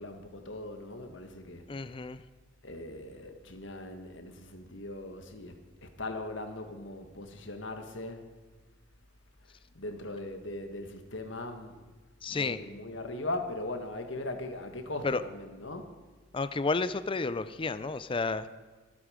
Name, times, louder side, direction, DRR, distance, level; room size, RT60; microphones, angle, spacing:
voice 1, 0.0-1.6 2.6-5.5 5.8-8.2 9.7-11.8 12.3-15.9, left 2 dB, 75° left, 1.6 m, -39 dB
voice 2, 1.7-2.2 12.2-12.6 15.0-15.2 16.3-18.5, left 3 dB, 25° left, 0.5 m, -31 dB
24.5 x 8.6 x 5.1 m
head